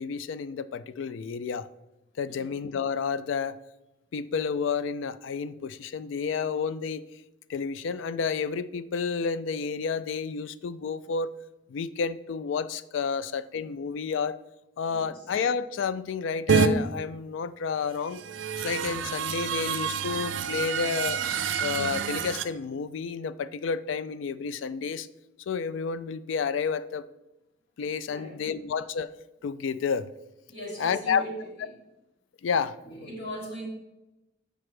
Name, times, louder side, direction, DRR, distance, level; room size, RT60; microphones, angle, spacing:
voice 1, 0.0-1.7 2.2-3.6 4.1-7.0 7.5-11.3 11.7-14.4 14.8-18.2 18.6-21.2 21.6-25.1 25.5-27.0 27.8-29.1 29.4-30.1 30.8-31.2 32.4-32.8, left 6 dB, 85° left, 16 dB, 0.3 m, -30 dB
sound 1, 16.5-16.7 18.1-22.4, right 7 dB, 80° right, 0.4 m, -28 dB
voice 2, 30.5-31.8 32.9-33.7, right 1 dB, 55° left, -4 dB, 2.1 m, -39 dB
7.7 x 5.0 x 3.2 m, 0.97 s
head